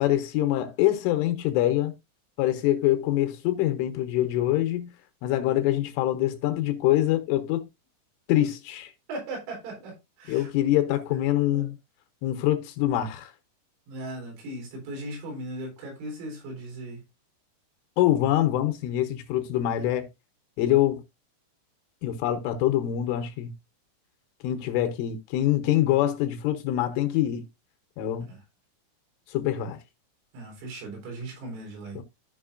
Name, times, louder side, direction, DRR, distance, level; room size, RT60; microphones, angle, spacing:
voice 1, 0.0-2.0 2.4-4.9 5.2-7.7 8.3-8.9 10.3-11.8 12.2-13.3 18.0-20.1 20.6-21.0 22.0-23.5 24.4-27.5 28.0-28.3 29.3-29.8 32.0-32.1, left 13 dB, 80° left, 3.3 m, -24 dB
voice 2, 9.1-10.6 11.1-11.2 11.5-11.7 13.9-17.0 28.3-28.4 30.3-32.0, right 1 dB, 85° right, 6.6 m, -38 dB
14.5 x 5.3 x 2.5 m
omnidirectional pair, 5.8 m